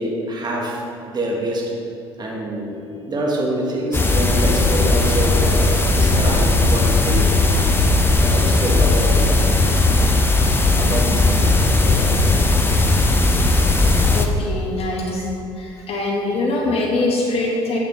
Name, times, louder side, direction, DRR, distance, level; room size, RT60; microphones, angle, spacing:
voice 1, 0.0-1.7 2.2-2.8 3.0-7.6 8.2-9.5 10.8-11.5 11.8-12.1, right 1 dB, 30° right, -2 dB, 1.6 m, -25 dB
sound 1, 3.9-14.3, left 2 dB, 15° left, 0.8 m, -17 dB
voice 2, 14.1-15.2 15.6-17.8, left 2 dB, 45° left, -2 dB, 1.8 m, -23 dB
8.4 x 6.6 x 3.5 m, 2.6 s
hypercardioid pair, 60°, 14 cm